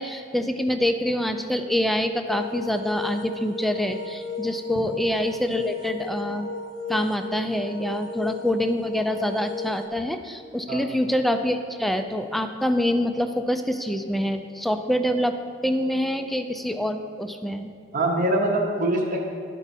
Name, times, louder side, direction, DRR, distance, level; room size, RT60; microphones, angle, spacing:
voice 1, 0.0-6.5 6.9-17.7, left 1 dB, ahead, 7 dB, 0.3 m, -26 dB
sound 1, 2.3-9.9, left 3 dB, 80° left, 0.5 m, -35 dB
voice 2, 10.7-11.0 17.9-19.3, right 1 dB, 45° right, -1 dB, 0.8 m, -24 dB
11.5 x 4.5 x 4.1 m, 2.3 s
head